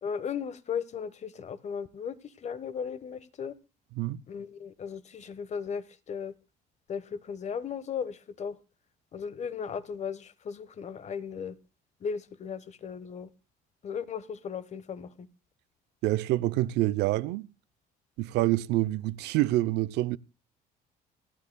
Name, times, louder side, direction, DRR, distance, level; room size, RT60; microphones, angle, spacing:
voice 1, 0.0-3.5 4.3-6.3 6.9-8.6 9.1-11.6 12.0-13.3 13.8-15.3, left 7 dB, 45° left, 1.2 m, -36 dB
voice 2, 16.0-17.5 18.2-20.2, right 17 dB, 85° right, 0.6 m, -27 dB
28.5 x 9.8 x 2.2 m
cardioid pair, 110°, 17 cm